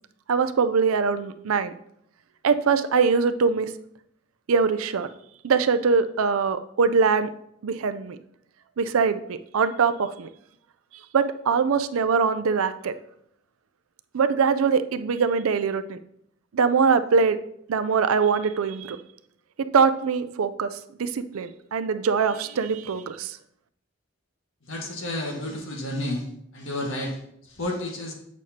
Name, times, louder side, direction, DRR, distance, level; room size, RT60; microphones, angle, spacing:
voice 1, 0.3-1.7 2.4-3.7 4.5-5.1 5.4-7.3 7.6-8.2 8.8-10.3 11.1-12.9 14.1-16.0 16.5-17.4 17.7-19.0 19.7-20.7 21.0-23.4, right 5 dB, 85° right, 11 dB, 0.5 m, -22 dB
voice 2, 24.6-26.3 26.5-28.1, left 1 dB, 75° left, 1 dB, 1.6 m, -31 dB
8.2 x 6.2 x 2.8 m, 0.74 s
head